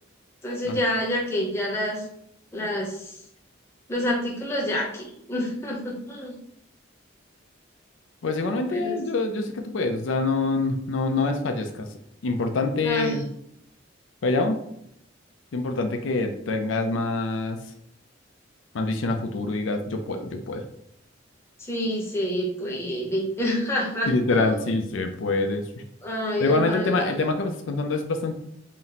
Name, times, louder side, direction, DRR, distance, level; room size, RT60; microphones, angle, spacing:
voice 1, 0.4-2.0 2.5-3.2 3.9-6.3 8.7-9.0 12.8-13.2 21.6-24.8 26.0-27.1, equal, 15° left, -3 dB, 0.9 m, -28 dB
voice 2, 8.2-11.9 12.2-13.3 14.2-14.6 15.5-17.6 18.7-20.6 24.1-25.8 26.4-28.3, left 3 dB, 80° left, 5 dB, 0.4 m, -25 dB
4.2 x 2.1 x 4.0 m, 0.75 s
head